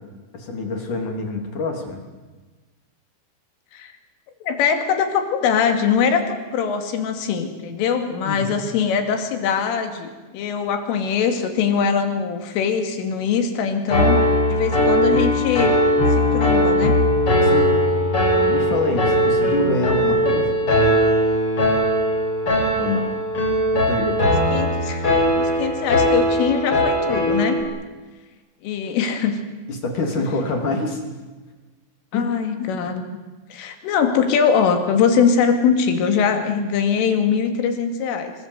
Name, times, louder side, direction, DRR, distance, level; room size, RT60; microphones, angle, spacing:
voice 1, 0.3-2.0 8.2-8.6 17.4-17.8 18.4-20.5 22.8-23.1 23.7-24.4 29.7-31.0 32.1-32.3, left 3 dB, 45° left, 3 dB, 4.1 m, -26 dB
voice 2, 4.4-14.2 14.5-15.8 16.1-17.0 24.5-25.0 25.4-27.6 28.6-29.4 32.1-33.0 33.5-38.3, left 6 dB, 85° left, 6 dB, 4.9 m, -22 dB
Piano, 13.9-27.6, equal, 30° left, 5.7 m, -19 dB
26.0 x 23.0 x 8.1 m, 1.2 s
omnidirectional pair, 5.6 m